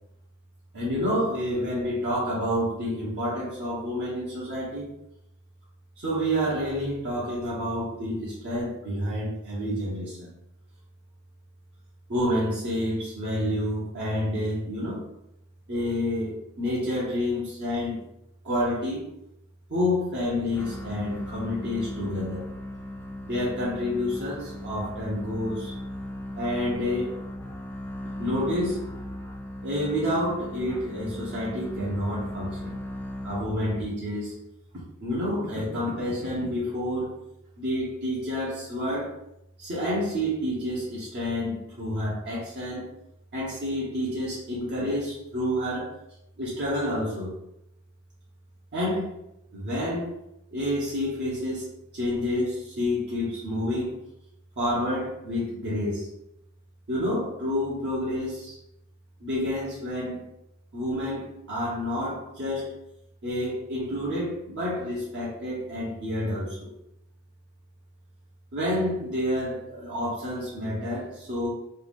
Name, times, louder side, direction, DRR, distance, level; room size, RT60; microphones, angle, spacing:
voice 1, 0.7-4.9 6.0-10.3 12.1-15.1 15.7-18.0 18.4-19.1 19.7-22.5 23.3-25.7 26.4-27.2 28.2-28.9 29.6-32.7 33.2-34.4 35.0-37.1 37.6-39.1 39.6-42.9 43.3-45.9 46.4-47.4 48.7-49.1 49.5-50.1 50.5-51.7 51.9-54.0 54.6-56.1 56.9-58.6 59.2-60.2 60.7-62.7 63.2-66.7 68.5-71.5, left 1 dB, 55° right, -8 dB, 1.0 m, -29 dB
sound 1, 20.5-33.9, left 1 dB, 10° left, 0.3 m, -37 dB
3.3 x 2.5 x 3.5 m, 0.82 s
head